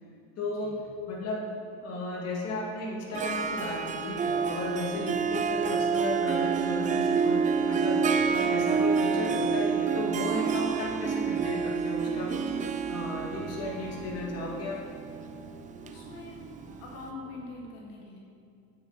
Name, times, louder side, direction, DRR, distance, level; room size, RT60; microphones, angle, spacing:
voice 1, 0.4-1.5 1.8-8.0 8.3-14.9, left 2 dB, 45° left, -3 dB, 2.2 m, -34 dB
sound 1, 0.7-17.5, right 3 dB, 85° right, 1.7 m, -52 dB
Harp, 3.1-16.7, right 6 dB, 20° right, 0.4 m, -28 dB
voice 2, 15.8-16.4 16.8-18.2, left 3 dB, 70° left, -3 dB, 2.0 m, -44 dB
9.7 x 8.0 x 4.1 m, 2.5 s
cardioid pair, 135°, 35 cm